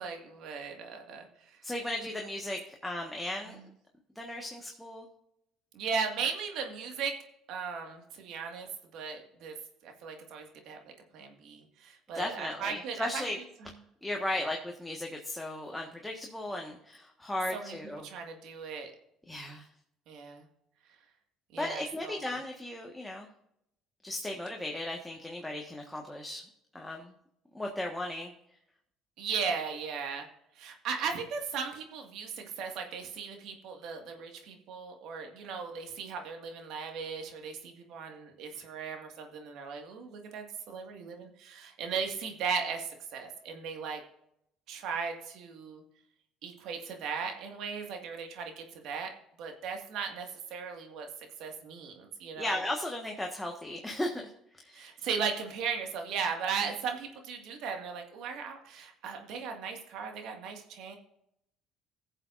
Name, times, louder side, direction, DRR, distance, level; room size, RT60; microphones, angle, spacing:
voice 1, 0.0-1.6 3.5-3.6 5.7-7.2 7.5-8.7 8.9-9.5 9.8-10.8 11.1-13.2 14.4-14.5 17.5-17.8 18.0-18.9 20.1-20.5 21.5-22.3 29.2-30.3 30.6-44.0 44.7-45.8 46.4-49.1 49.4-51.1 51.4-52.6 54.7-61.0, right 6 dB, 70° right, 4 dB, 1.9 m, -37 dB
voice 2, 1.6-3.6 4.1-5.1 12.1-13.4 14.0-18.0 19.3-19.7 21.6-23.3 24.0-26.4 26.7-27.1 27.5-28.3 52.4-54.9, left 1 dB, 5° left, 1 dB, 1.4 m, -36 dB
17.0 x 7.3 x 2.6 m, 0.77 s
supercardioid pair, 80°, 0 cm